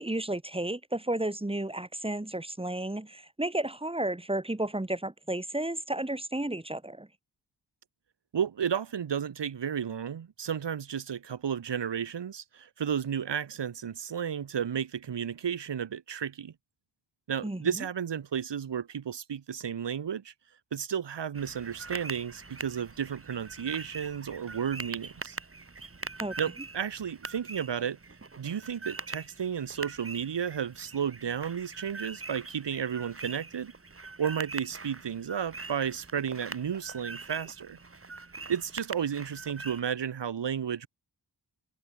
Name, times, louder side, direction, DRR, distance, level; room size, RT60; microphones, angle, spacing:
voice 1, 0.0-7.1 17.4-17.8 26.2-26.4, right 1 dB, 15° right, 1.7 m, -32 dB
voice 2, 8.3-16.5 17.3-20.3 20.7-25.4 26.4-28.0 28.4-33.7 34.2-37.8 38.5-40.9, right 8 dB, 75° right, 1.3 m, -33 dB
sound 1, 21.3-39.8, right 3 dB, 30° right, 1.7 m, -43 dB
open air
cardioid pair, 55°, 43 cm